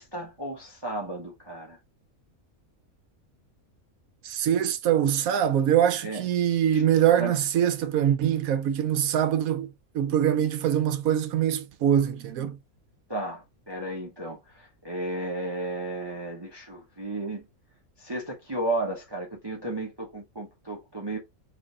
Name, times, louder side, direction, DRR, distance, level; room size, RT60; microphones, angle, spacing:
voice 1, 0.0-1.8 6.0-6.2 6.7-6.8 7.2-7.4 13.1-17.4 18.0-21.2, right 2 dB, 20° right, 1.0 m, -33 dB
voice 2, 4.2-9.7 9.9-12.6, right 10 dB, 75° right, 1.1 m, -23 dB
4.0 x 3.2 x 3.9 m
omnidirectional pair, 1.5 m